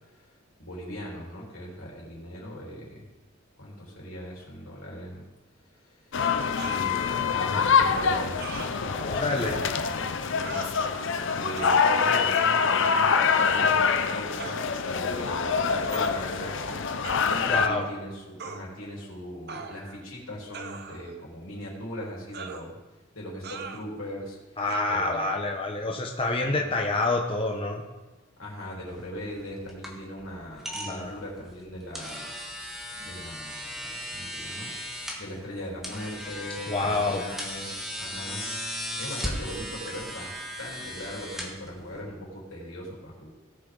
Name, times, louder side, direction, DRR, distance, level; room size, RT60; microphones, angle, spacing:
voice 1, 0.6-3.0 3.6-5.2 6.6-8.7 9.5-11.0 11.3-16.9 17.2-22.8 23.1-24.4 24.9-25.3 26.5-26.6 28.4-32.3 33.0-34.8 35.2-40.3 40.6-43.3, equal, 85° left, -4 dB, 3.7 m, -39 dB
sound 1, 6.1-17.7, left 6 dB, 65° left, 0.6 m, -25 dB
sound 2, 6.6-6.9 8.4-8.7 9.4-9.6 10.4-10.7 11.6-11.8 12.3-13.0 13.3-13.8 14.4-14.7 15.9-16.1 17.0-17.3 18.4-18.6 19.5-20.0 20.5-21.2 22.3-22.7 23.4-23.8 24.7-24.8, right 5 dB, 50° right, 0.8 m, -40 dB
voice 2, 8.9-9.6 17.4-17.9 24.6-27.8 30.9-31.1 36.7-37.2, left 2 dB, 25° left, 1 dB, 0.9 m, -27 dB
sound 3, 28.9-42.2, equal, ahead, 1.6 m, -37 dB
18.0 x 6.5 x 3.8 m, 1.1 s
head